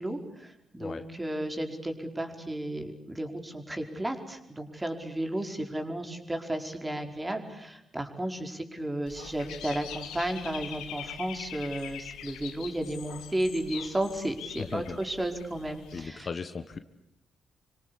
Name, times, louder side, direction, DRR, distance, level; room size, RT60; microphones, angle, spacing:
voice 1, 0.0-16.3, right 1 dB, 15° right, 5 dB, 4.9 m, -33 dB
Dog / Bird, 9.1-16.1, left 9 dB, 70° left, 2.2 m, -43 dB
voice 2, 14.6-15.0 15.9-16.8, left 5 dB, 45° left, 10 dB, 1.5 m, -37 dB
27.5 x 25.5 x 8.5 m, 0.80 s
figure-of-eight pair, 40°, 0 cm